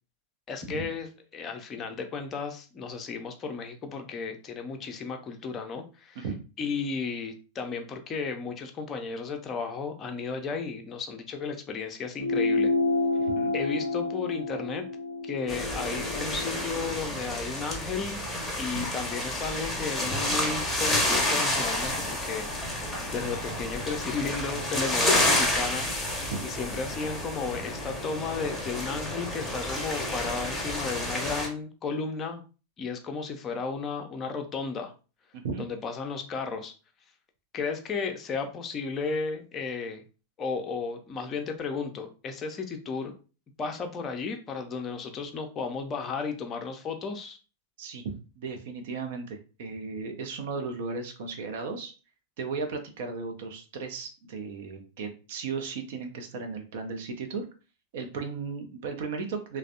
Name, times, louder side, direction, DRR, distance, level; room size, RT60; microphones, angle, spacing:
voice 1, 0.5-6.2 6.6-12.7 13.5-14.9 15.2-18.2 18.6-32.4 32.8-34.9 35.6-36.7 37.5-40.0 40.4-43.1 43.6-47.4, left 5 dB, 25° left, 5 dB, 0.5 m, -34 dB
sound 1, 12.2-17.0, left 2 dB, 85° left, 0.4 m, -29 dB
sound 2, 15.5-31.5, left 1 dB, 5° left, 0.8 m, -30 dB
voice 2, 35.3-35.6 47.8-51.9 52.4-57.4 57.9-59.6, right 4 dB, 55° right, 6 dB, 0.5 m, -35 dB
3.2 x 2.0 x 2.5 m, 0.33 s
figure-of-eight pair, 90°, 0 cm